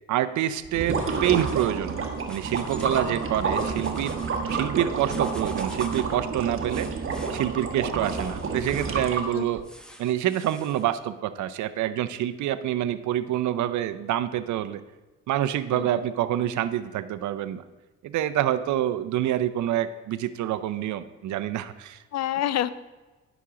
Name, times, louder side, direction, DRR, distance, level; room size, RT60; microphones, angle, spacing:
voice 1, 0.1-4.2 4.5-6.9 7.3-9.6 10.0-14.8 15.3-17.6 18.0-22.0, right 12 dB, 75° right, 13 dB, 0.6 m, -27 dB
sound 1, 0.6-9.6, right 4 dB, 45° right, 1.2 m, -29 dB
sound 2, 0.7-1.8 2.1-3.1 3.4-4.3 4.9-6.2 6.7-7.3 8.0-9.0 9.6-10.8, equal, 5° left, 0.9 m, -47 dB
voice 2, 15.7-16.1 22.1-22.7, left 12 dB, 60° left, 15 dB, 0.5 m, -28 dB
9.8 x 6.0 x 3.7 m, 1.2 s
cardioid pair, 90°, 30 cm